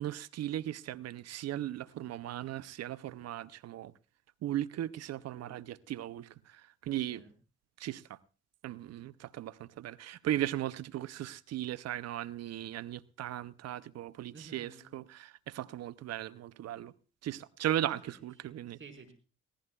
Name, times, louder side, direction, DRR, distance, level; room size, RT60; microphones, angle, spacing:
voice 1, 0.0-3.9 4.4-7.2 7.8-8.2 8.6-16.9 17.2-18.8, right 13 dB, 60° right, 0.6 m, -37 dB
voice 2, 14.3-14.9 18.0-18.1 18.4-18.5 18.8-19.1, right 4 dB, 45° right, 4.9 m, -52 dB
22.5 x 16.5 x 2.3 m
hypercardioid pair, 40°, 29 cm